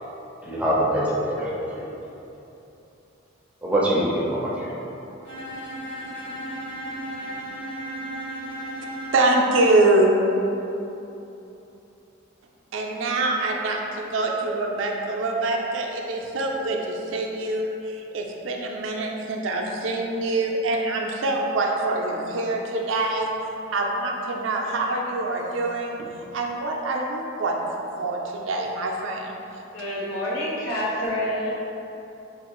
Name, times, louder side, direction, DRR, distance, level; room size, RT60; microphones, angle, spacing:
voice 1, 0.4-1.8 3.6-4.7, right 1 dB, 5° right, -6 dB, 0.4 m, -24 dB
Bowed string instrument, 5.2-9.5, right 1 dB, 60° left, 1.5 m, -34 dB
voice 2, 9.1-10.1 12.7-23.3 23.7-29.3, right 2 dB, 70° right, 0 dB, 0.4 m, -25 dB
voice 3, 29.7-31.5, left 1 dB, 75° left, -7 dB, 0.9 m, -27 dB
4.4 x 2.4 x 2.9 m, 3.0 s
head